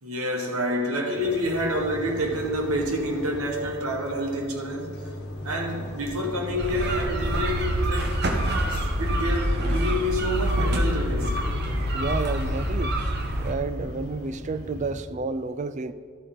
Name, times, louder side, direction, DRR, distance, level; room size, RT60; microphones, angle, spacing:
voice 1, 0.0-5.0 5.4-8.1 8.7-11.4, equal, 85° right, 1.5 m, -28 dB
sound 1, 1.1-14.9, left 1 dB, 50° left, 1.3 m, -39 dB
sound 2, 6.6-13.5, right 1 dB, 50° right, 1.0 m, -26 dB
voice 2, 11.9-13.0 13.4-15.9, right 3 dB, 35° right, 0.3 m, -30 dB
12.5 x 8.1 x 3.9 m
head